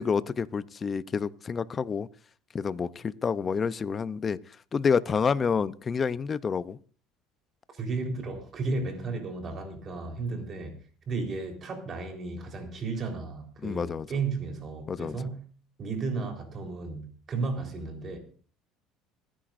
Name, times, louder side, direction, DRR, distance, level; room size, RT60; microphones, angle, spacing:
voice 1, 0.0-2.1 2.5-4.4 4.7-6.8 10.3-10.5 13.6-14.1 14.9-15.2, left 6 dB, 30° left, 0.6 m, -28 dB
voice 2, 7.7-10.8 11.1-15.4 15.8-18.2, right 3 dB, 35° right, 4.0 m, -34 dB
26.5 x 10.0 x 2.6 m
cardioid pair, 120°, 0 cm